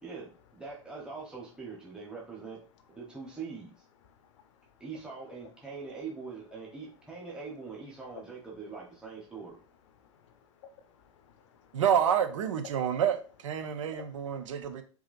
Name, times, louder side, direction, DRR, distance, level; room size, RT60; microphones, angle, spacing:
voice 1, 0.0-2.6 2.9-3.7 4.8-9.6, right 4 dB, 5° right, 1.1 m, -43 dB
voice 2, 4.1-4.7 10.0-11.8 12.7-12.8 13.6-14.8, left 7 dB, 65° left, 0.7 m, -56 dB
voice 3, 11.7-13.2 13.4-14.8, right 8 dB, 75° right, 0.7 m, -28 dB
4.8 x 2.8 x 2.6 m
hypercardioid pair, 95°, 16 cm